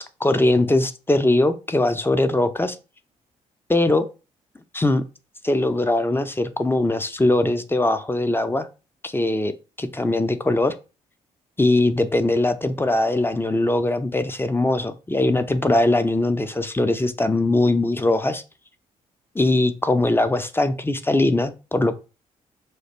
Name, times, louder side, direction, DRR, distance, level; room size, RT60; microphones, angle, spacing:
voice 1, 0.2-2.8 3.7-4.1 4.7-5.0 5.4-8.7 9.0-9.5 9.8-10.7 11.6-18.4 19.3-22.0, left 2 dB, 10° left, 10 dB, 0.5 m, -21 dB
3.2 x 2.4 x 4.3 m, 0.31 s
hypercardioid pair, 45°, 18 cm